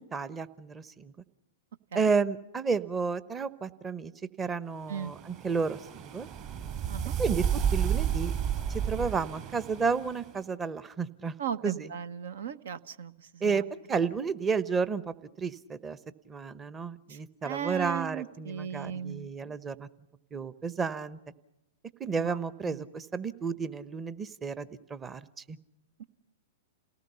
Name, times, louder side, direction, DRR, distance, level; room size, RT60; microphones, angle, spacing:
voice 1, 0.1-1.1 1.9-4.1 4.4-6.3 7.2-8.3 8.7-11.3 11.6-11.9 13.4-13.6 13.9-16.0 16.3-19.9 20.3-21.2 22.0-25.2 25.5-25.6, right 5 dB, 20° right, 14 dB, 1.1 m, -31 dB
sound 1, 4.9-10.2, right 8 dB, 40° right, 6.1 m, -32 dB
voice 2, 11.4-13.1 17.4-19.3 22.6-22.8, right 8 dB, 70° right, 14 dB, 1.2 m, -36 dB
28.5 x 18.5 x 5.7 m, 0.90 s
hypercardioid pair, 110°, 0 cm